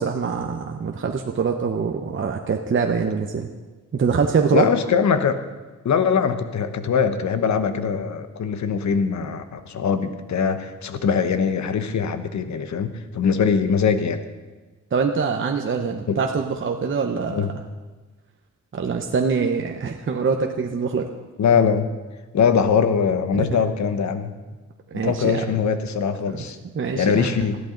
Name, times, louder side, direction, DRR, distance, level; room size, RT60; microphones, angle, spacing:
voice 1, 0.0-3.5 3.9-4.7 14.9-17.5 18.7-21.0 23.3-23.5 24.9-25.4 26.3-26.5 26.7-27.3, right 5 dB, 40° right, 3 dB, 0.9 m, -24 dB
voice 2, 4.5-5.4 5.8-14.2 16.1-16.2 17.3-17.5 21.4-21.9 22.3-24.3 24.9-26.6 26.9-27.6, left 6 dB, 65° left, 9 dB, 1.1 m, -22 dB
20.5 x 14.0 x 3.9 m, 1.3 s
wide cardioid pair, 130°, 31 cm